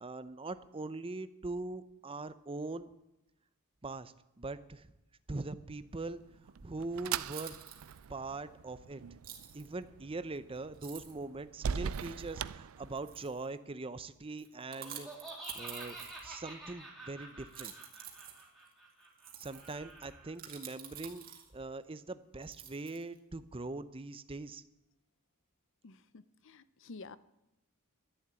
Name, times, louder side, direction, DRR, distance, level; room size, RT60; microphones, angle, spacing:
voice 1, 0.0-2.9 3.8-4.9 5.3-6.2 6.6-7.5 8.1-9.0 9.5-15.1 15.6-16.0 16.2-17.7 19.4-24.6, right 3 dB, 25° right, 13 dB, 0.6 m, -42 dB
sound 1, 6.0-13.4, right 7 dB, 70° right, 0.4 m, -42 dB
sound 2, 6.6-6.7 7.2-8.1 9.2-9.7 10.4-10.5 10.7-11.2 11.9-12.3 13.0-13.5 14.4-16.5 17.4-21.7 22.4-23.2, right 9 dB, 40° right, 2.2 m, -49 dB
Laughter, 14.7-20.3, right 2 dB, ahead, 3.5 m, -49 dB
voice 2, 25.8-27.2, left 3 dB, 60° left, 16 dB, 0.6 m, -50 dB
11.5 x 10.5 x 8.9 m, 0.91 s
head